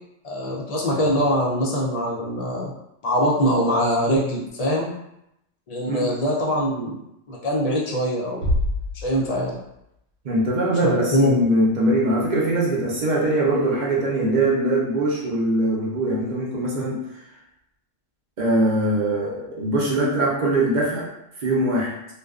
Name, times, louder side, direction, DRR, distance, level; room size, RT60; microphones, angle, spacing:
voice 1, 0.2-2.7 3.0-4.9 5.7-7.0 7.3-8.4 9.0-9.6 10.8-11.4, equal, 70° left, -4 dB, 0.3 m, -23 dB
Bass drum, 8.4-9.9, left 1 dB, 85° right, 1.0 m, -26 dB
voice 2, 10.2-17.0 18.4-21.1 21.4-21.9, right 1 dB, 50° right, -4 dB, 0.6 m, -22 dB
2.5 x 2.2 x 2.3 m, 0.82 s
omnidirectional pair, 1.3 m